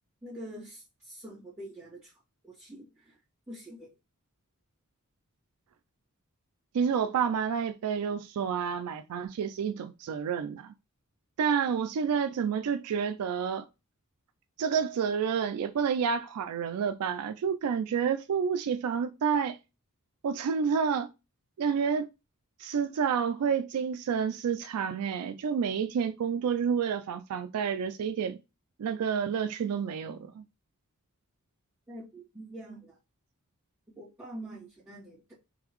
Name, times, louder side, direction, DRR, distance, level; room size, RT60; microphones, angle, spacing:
voice 1, 0.2-2.1 2.4-3.2 3.5-3.9 31.9-33.0 33.9-35.3, right 1 dB, 10° right, 2.0 m, -45 dB
voice 2, 6.7-10.7 11.4-13.7 14.6-19.6 20.2-21.1 21.6-22.1 22.6-28.4 28.8-30.4, right 7 dB, 85° right, 0.3 m, -29 dB
3.8 x 3.4 x 3.0 m
head